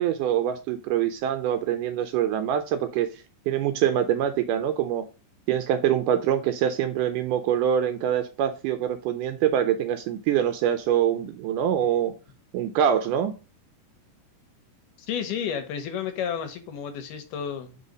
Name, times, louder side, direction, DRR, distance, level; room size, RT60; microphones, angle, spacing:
voice 1, 0.0-3.1 3.5-5.0 5.5-12.1 12.5-13.3, right 10 dB, 80° right, 9 dB, 1.9 m, -24 dB
voice 2, 15.1-17.8, left 8 dB, 75° left, 8 dB, 2.3 m, -31 dB
5.6 x 3.8 x 5.1 m, 0.33 s
omnidirectional pair, 4.0 m